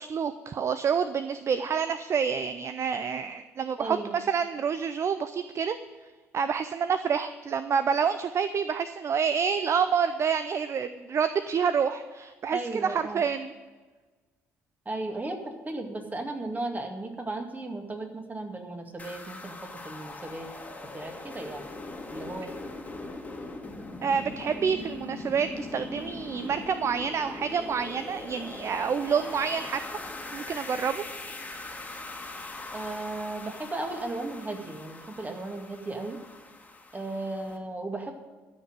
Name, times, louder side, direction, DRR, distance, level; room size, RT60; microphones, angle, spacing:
voice 1, 0.0-5.8 6.3-13.5 24.0-29.8 30.3-31.0, right 6 dB, 40° right, 11 dB, 0.6 m, -28 dB
voice 2, 3.8-4.2 12.5-13.2 14.9-19.6 19.8-20.5 20.9-21.6 22.1-22.5 32.7-36.2 36.9-38.1, right 2 dB, 25° right, 4 dB, 2.2 m, -35 dB
sound 1, 19.0-37.6, left 2 dB, 20° left, 2.0 m, -41 dB
13.0 x 6.1 x 9.0 m, 1.3 s
hypercardioid pair, 50°, 7 cm